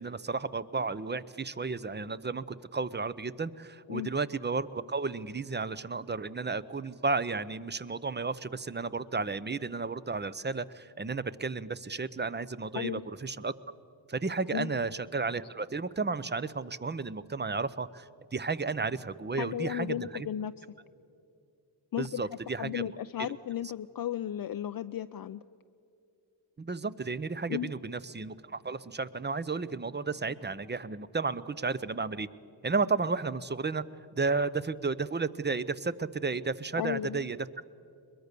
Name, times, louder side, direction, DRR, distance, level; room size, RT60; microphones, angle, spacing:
voice 1, 0.0-13.5 14.1-20.3 22.0-22.9 26.6-32.3 32.6-33.8 34.2-37.4, right 4 dB, 25° right, 16 dB, 0.7 m, -33 dB
voice 2, 19.3-20.5 21.9-22.2 22.6-25.4 27.5-27.7 36.8-37.3, left 11 dB, 50° left, 10 dB, 0.5 m, -34 dB
22.0 x 22.0 x 6.8 m, 2.6 s
cardioid pair, 65°, 46 cm